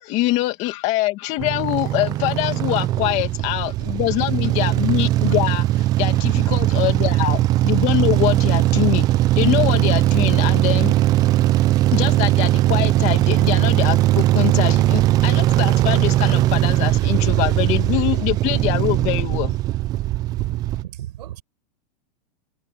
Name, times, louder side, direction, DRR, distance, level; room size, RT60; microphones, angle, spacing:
voice 1, 0.0-9.1 9.4-10.9 11.9-19.6, left 17 dB, 35° left, 2.2 m, -24 dB
sound 1, 1.4-20.8, right 15 dB, 20° right, 0.4 m, -19 dB
voice 2, 20.3-21.4, right 12 dB, 85° right, 4.8 m, -36 dB
supercardioid pair, 165°, 21 cm